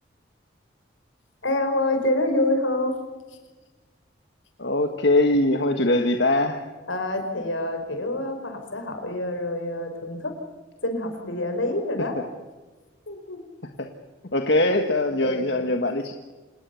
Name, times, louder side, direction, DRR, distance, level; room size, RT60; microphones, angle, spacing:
voice 1, 1.4-3.0 6.9-10.3 10.8-12.2 13.1-13.4 15.2-15.7, left 1 dB, 85° left, 6 dB, 5.0 m, -27 dB
voice 2, 4.6-6.6 13.8-13.9 14.3-16.1, left 2 dB, 60° left, 5 dB, 1.6 m, -22 dB
27.0 x 20.0 x 7.1 m, 1.3 s
head